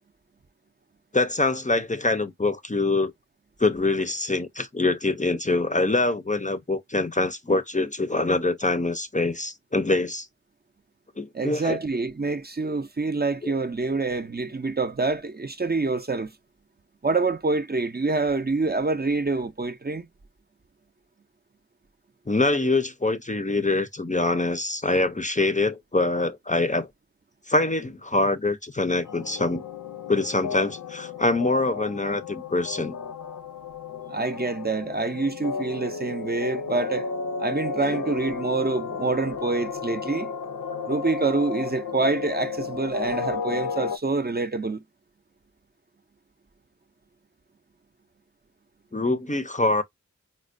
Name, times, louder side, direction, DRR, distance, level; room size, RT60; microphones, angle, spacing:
voice 1, 1.1-3.1 3.6-10.3 11.2-11.8 13.4-13.5 22.3-26.9 27.5-29.6 30.1-32.9 37.9-38.0 48.9-49.8, left 2 dB, 25° left, 0.5 m, -24 dB
voice 2, 11.3-16.3 17.0-20.1 34.1-37.1 37.4-40.3 40.8-44.8, right 3 dB, 35° right, 0.5 m, -26 dB
sound 1, 29.0-44.0, left 5 dB, 80° left, 0.5 m, -33 dB
4.2 x 2.1 x 2.4 m
wide cardioid pair, 55°, 30 cm